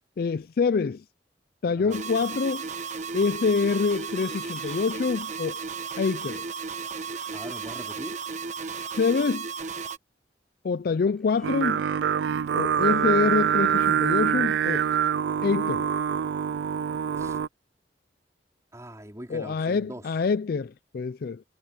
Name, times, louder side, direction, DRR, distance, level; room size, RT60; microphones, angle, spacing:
voice 1, 0.2-1.0 1.6-2.6 3.1-5.6 6.0-6.4 9.0-9.5 10.6-11.9 12.5-14.9 15.4-15.9 19.3-21.4, left 5 dB, 55° left, 0.4 m, -26 dB
sound 1, 1.9-10.0, right 5 dB, 45° right, 1.2 m, -34 dB
Livestock farm animals working animals, 3.7-5.4 5.9-6.5 7.0-7.9 8.6-9.3 11.0-11.6 12.0-12.3 12.7-13.9 14.3-15.3 15.7-16.1 16.5-16.9, left 1 dB, 5° left, 7.2 m, -55 dB
voice 2, 7.3-8.2 17.2-17.4 18.7-20.1, right 1 dB, 20° right, 4.4 m, -42 dB
Singing, 11.4-17.5, right 8 dB, 70° right, 0.3 m, -25 dB
head